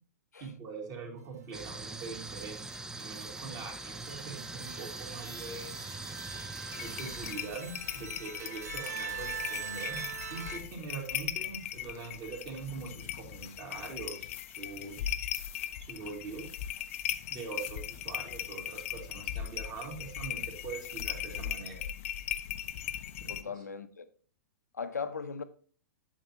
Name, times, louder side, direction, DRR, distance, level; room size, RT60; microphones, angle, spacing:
voice 1, 0.4-2.7 3.0-5.7 6.8-14.3 14.6-15.2 15.8-16.5 17.3-21.8 23.2-23.3, right 5 dB, 40° right, 2.7 m, -43 dB
sound 1, 1.5-7.3, right 2 dB, 5° right, 0.4 m, -42 dB
sound 2, 1.7-10.6, right 7 dB, 80° right, 1.1 m, -43 dB
sound 3, 6.7-23.4, left 11 dB, 55° left, 0.5 m, -38 dB
voice 2, 23.3-24.1 24.7-25.4, left 5 dB, 85° left, 0.7 m, -38 dB
8.8 x 7.4 x 2.9 m
hypercardioid pair, 115°, 9 cm